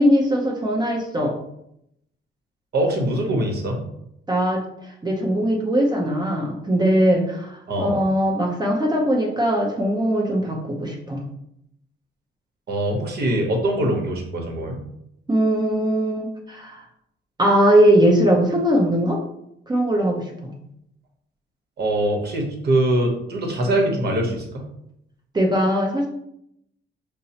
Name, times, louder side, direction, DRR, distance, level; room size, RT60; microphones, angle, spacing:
voice 1, 0.0-1.3 4.3-11.2 15.3-16.8 17.4-19.2 19.7-20.5 25.3-26.1, equal, 20° right, -1 dB, 0.7 m, -20 dB
voice 2, 2.7-3.8 7.7-8.0 12.7-14.8 21.8-24.6, right 1 dB, 55° right, 1 dB, 1.0 m, -23 dB
5.3 x 2.0 x 2.8 m, 0.78 s
cardioid pair, 90°, 20 cm